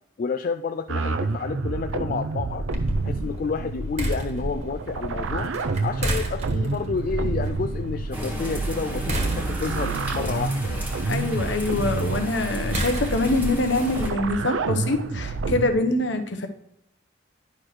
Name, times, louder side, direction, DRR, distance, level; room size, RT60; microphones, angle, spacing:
voice 1, 0.2-2.7 3.0-5.5 5.8-10.9, left 5 dB, 45° left, 8 dB, 0.3 m, -30 dB
sound 1, 0.9-15.7, right 3 dB, 90° right, 0.5 m, -29 dB
sound 2, 2.7-13.6, equal, 35° right, 1.4 m, -33 dB
sound 3, 8.1-14.1, equal, 10° right, 1.5 m, -33 dB
voice 2, 11.0-16.5, left 2 dB, 70° left, 6 dB, 1.0 m, -24 dB
10.5 x 5.9 x 3.2 m, 0.78 s
head